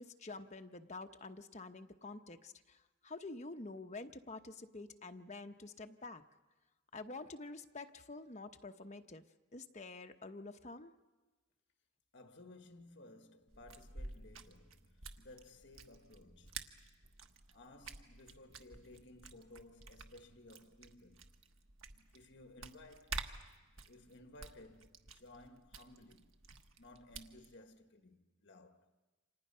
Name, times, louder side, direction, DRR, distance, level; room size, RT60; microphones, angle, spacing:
voice 1, 0.0-6.2 6.9-9.2 9.5-10.9, left 3 dB, 35° left, 1.0 m, -48 dB
voice 2, 12.1-16.8 17.5-21.3 21.9-23.3 23.8-28.9, left 2 dB, 55° left, 1.6 m, -58 dB
sound 1, 13.5-27.6, right 4 dB, 80° right, 1.4 m, -51 dB
29.0 x 26.0 x 5.6 m
head